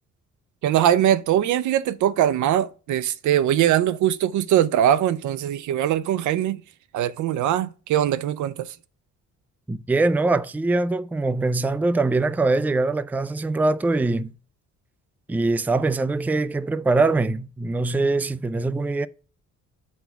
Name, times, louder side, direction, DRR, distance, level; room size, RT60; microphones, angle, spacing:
voice 1, 0.6-6.6 6.9-8.8, right 11 dB, 75° right, 0.5 m, -21 dB
voice 2, 9.7-14.3 15.3-19.1, right 3 dB, 5° right, 0.4 m, -23 dB
7.9 x 4.3 x 5.7 m
cardioid pair, 90°, 30 cm